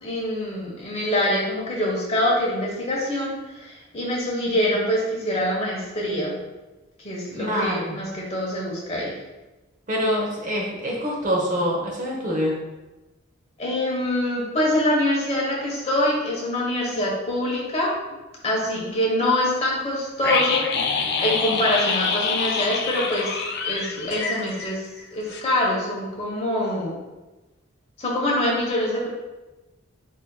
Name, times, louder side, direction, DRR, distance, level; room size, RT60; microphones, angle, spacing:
voice 1, 0.0-6.4 7.0-9.1 13.6-17.9 18.4-20.6 21.2-23.4 23.6-24.8 25.1-27.0 28.0-29.1, left 1 dB, 30° left, -4 dB, 1.1 m, -24 dB
voice 2, 7.4-8.0 9.9-12.6 18.8-18.9, equal, 40° right, -2 dB, 0.9 m, -25 dB
sound 1, 20.2-25.0 25.3-25.4, left 5 dB, 50° left, 0.4 m, -26 dB
8.1 x 2.8 x 2.2 m, 1.1 s
head